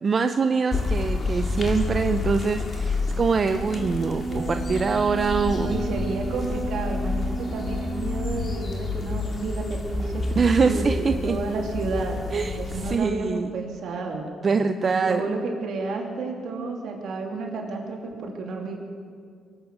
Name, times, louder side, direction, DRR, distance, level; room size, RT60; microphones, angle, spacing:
voice 1, 0.0-5.8 10.3-11.4 12.3-13.5 14.4-15.3, right 5 dB, 40° right, 8 dB, 0.6 m, -24 dB
sound 1, 0.7-13.0, left 3 dB, 40° left, 2.2 m, -29 dB
Wind instrument woodwind instrument, 3.3-8.4, right 3 dB, ahead, 4.8 m, -34 dB
voice 2, 4.3-4.8 5.5-10.3 10.6-12.2 12.5-14.3 14.8-18.8, right 3 dB, 70° right, 0 dB, 2.9 m, -31 dB
23.5 x 8.8 x 6.2 m, 2.1 s
cardioid pair, 90°, 0 cm